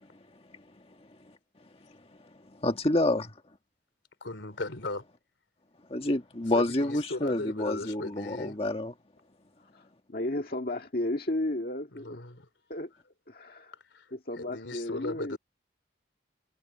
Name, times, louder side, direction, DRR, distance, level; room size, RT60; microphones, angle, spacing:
voice 1, 2.6-3.3 5.9-8.9, left 1 dB, 30° left, 1.5 m, -28 dB
voice 2, 4.2-5.0 6.5-8.6 11.9-12.4 13.9-14.1 14.4-15.4, left 2 dB, 85° left, 3.2 m, -37 dB
voice 3, 9.6-12.2 12.7-12.9 13.3-13.8 14.1-15.4, left 1 dB, 55° left, 1.8 m, -34 dB
head